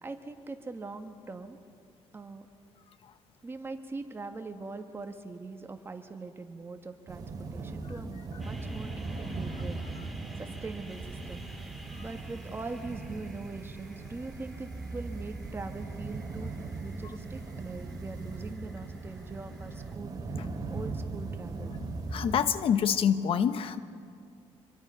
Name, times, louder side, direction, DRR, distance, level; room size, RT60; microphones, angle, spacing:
voice 1, 0.0-1.6 2.1-2.5 3.4-10.1 10.4-11.4 12.0-16.6 16.8-20.4 20.7-21.8, right 3 dB, 20° right, 6 dB, 1.5 m, -42 dB
sound 1, 7.1-22.5, right 3 dB, 40° right, 2.8 m, -39 dB
sound 2, 8.4-19.9, right 1 dB, ahead, 1.8 m, -53 dB
voice 2, 22.1-23.8, left 8 dB, 60° left, 12 dB, 0.9 m, -26 dB
26.5 x 22.5 x 5.8 m, 2.3 s
cardioid pair, 130°, 11 cm